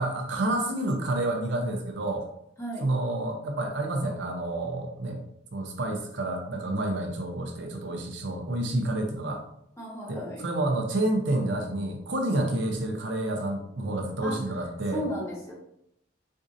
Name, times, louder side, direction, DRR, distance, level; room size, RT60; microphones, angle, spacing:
voice 1, 0.0-2.3 2.8-5.2 5.5-9.4 10.1-15.0, right 1 dB, 70° right, 3 dB, 0.6 m, -29 dB
voice 2, 9.8-10.4 14.2-14.4 14.9-15.5, equal, 15° left, -4 dB, 1.0 m, -34 dB
4.4 x 2.5 x 2.6 m, 0.74 s
head